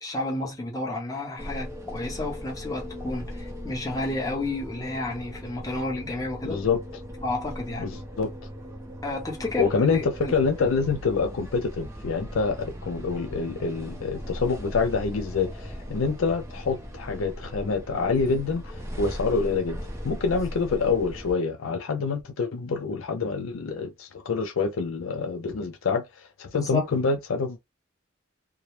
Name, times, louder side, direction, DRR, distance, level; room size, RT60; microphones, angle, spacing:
voice 1, 0.0-6.6 7.2-7.9 9.0-10.3 26.5-26.8, left 2 dB, 15° left, 0.8 m, -31 dB
sound 1, 1.4-21.3, equal, 15° right, 0.5 m, -38 dB
voice 2, 6.4-6.8 7.8-7.9 8.2-8.3 9.6-26.0 26.4-27.6, left 4 dB, 75° left, 0.5 m, -26 dB
2.3 x 2.0 x 3.0 m
head